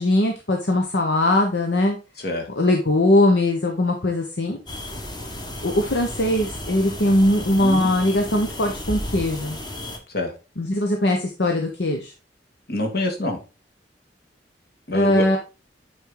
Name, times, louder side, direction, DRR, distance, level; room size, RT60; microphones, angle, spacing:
voice 1, 0.0-2.0 2.6-4.6 5.6-9.6 10.6-12.1 14.9-15.4, left 1 dB, 75° left, 3 dB, 1.1 m, -20 dB
sound 1, 4.7-10.0, left 1 dB, 25° left, 1.2 m, -33 dB
voice 2, 7.6-7.9 10.1-10.3 12.7-13.4 14.9-15.4, left 1 dB, 60° left, 3 dB, 2.1 m, -26 dB
8.9 x 4.5 x 3.8 m, 0.31 s
head